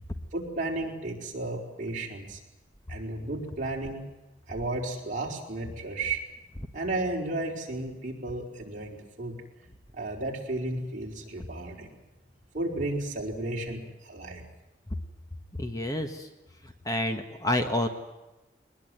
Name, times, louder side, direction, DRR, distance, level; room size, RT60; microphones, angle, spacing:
voice 1, 0.3-2.4 2.9-4.0 4.5-6.2 6.7-9.3 9.9-11.9 12.5-14.4, right 2 dB, 40° right, -1 dB, 4.8 m, -33 dB
voice 2, 15.6-16.3 16.8-17.9, left 1 dB, 20° left, 6 dB, 1.4 m, -28 dB
22.0 x 20.5 x 9.4 m, 1.0 s
head